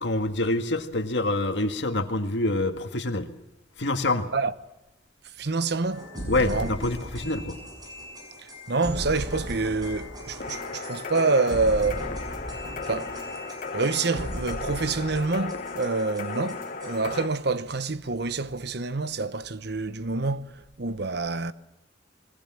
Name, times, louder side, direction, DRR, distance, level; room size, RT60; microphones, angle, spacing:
voice 1, 0.0-3.3 3.8-4.3 6.3-7.6, left 2 dB, 65° left, 1.9 m, -26 dB
voice 2, 5.4-6.1 6.4-6.7 8.7-12.1 12.5-12.6 12.9-13.2 13.7-21.5, right 3 dB, 60° right, 0.9 m, -27 dB
sound 1, 5.9-17.3, equal, 20° right, 6.4 m, -38 dB
sound 2, 10.4-17.3, left 4 dB, 45° left, 1.9 m, -36 dB
26.0 x 21.5 x 7.5 m
head